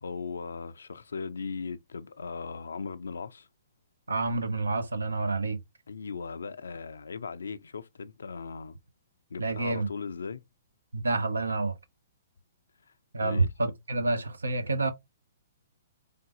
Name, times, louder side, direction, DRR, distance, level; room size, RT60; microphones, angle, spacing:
voice 1, 0.0-3.5 5.9-8.8 9.3-10.4 13.2-13.5, left 5 dB, 80° left, 0.4 m, -38 dB
voice 2, 4.1-5.6 9.4-9.9 10.9-11.8 13.1-14.9, right 3 dB, 90° right, 0.8 m, -28 dB
3.9 x 3.5 x 2.9 m
hypercardioid pair, 125°, 0 cm